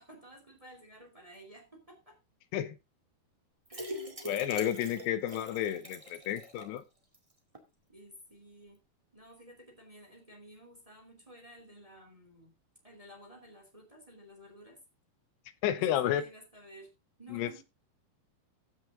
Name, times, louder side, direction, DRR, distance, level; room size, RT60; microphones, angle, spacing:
voice 1, 0.0-2.2 3.7-4.1 7.9-8.8 9.1-12.5 12.8-14.8 15.8-16.9 17.2-17.6, right 1 dB, 10° right, 2.1 m, -53 dB
sound 1, 3.7-6.8 7.1-7.2 7.5-7.6, equal, 35° right, 0.5 m, -42 dB
voice 2, 4.2-6.8 15.6-16.2 17.3-17.6, left 11 dB, 85° left, 3.1 m, -31 dB
15.0 x 6.3 x 3.8 m
omnidirectional pair, 4.8 m